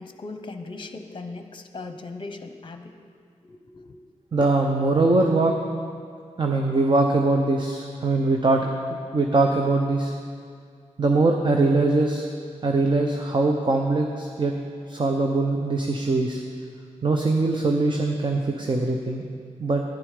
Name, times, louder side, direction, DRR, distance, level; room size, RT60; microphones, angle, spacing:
voice 1, 0.0-2.9 3.4-4.0, left 3 dB, 40° left, 7 dB, 0.8 m, -38 dB
voice 2, 4.3-5.5 6.4-10.1 11.0-12.3 12.6-14.5 14.9-16.4 17.0-19.2 19.6-19.8, right 2 dB, 40° right, 2 dB, 0.7 m, -22 dB
11.0 x 10.5 x 5.0 m, 2.2 s
wide cardioid pair, 105°, 13 cm